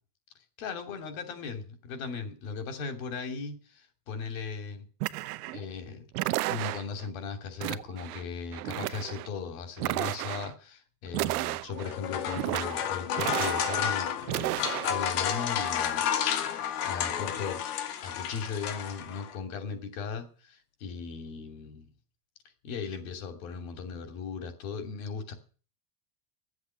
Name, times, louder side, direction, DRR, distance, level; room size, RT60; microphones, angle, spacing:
voice 1, 0.6-4.9 5.5-6.1 6.5-16.5 16.8-17.6 18.0-21.9 22.6-25.3, left 5 dB, 65° left, 7 dB, 2.9 m, -38 dB
sound 1, 5.0-5.6 6.1-7.0 7.6-8.2 8.5-9.3 9.8-10.5 11.1-11.9 12.3-12.9 13.1-13.9 14.2-14.9, right 18 dB, 80° right, 0.9 m, -32 dB
sound 2, 11.7-19.3, left 9 dB, 85° left, 2.2 m, -31 dB
12.5 x 8.2 x 9.5 m, 0.39 s
supercardioid pair, 175°, 44 cm